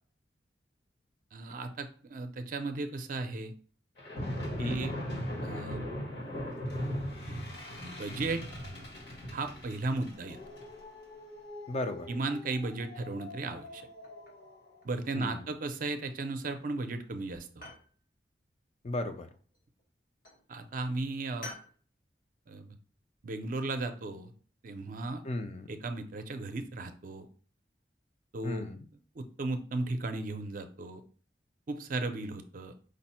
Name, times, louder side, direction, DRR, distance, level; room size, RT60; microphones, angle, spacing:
voice 1, 1.3-3.5 4.6-4.9 5.4-5.8 7.8-8.4 9.3-10.4 12.1-13.8 14.8-17.7 20.5-21.5 22.5-22.8 23.2-24.3 24.6-25.2 25.7-27.3 28.3-28.6 29.2-31.0 31.7-32.7, right 2 dB, 50° right, 7 dB, 0.5 m, -35 dB
sound 1, 4.0-14.6, equal, 75° left, 1.4 m, -40 dB
voice 2, 4.6-5.0 11.7-12.1 15.1-15.5 18.8-19.3 25.2-25.7 28.4-28.9, left 2 dB, 35° left, 8 dB, 0.4 m, -35 dB
sound 2, 13.7-14.5 14.8-15.5 16.3-16.7 17.0-17.9 19.3-19.9 20.2-20.5 21.4-21.8, left 2 dB, 55° left, 1.0 m, -50 dB
5.0 x 2.0 x 4.2 m, 0.43 s
head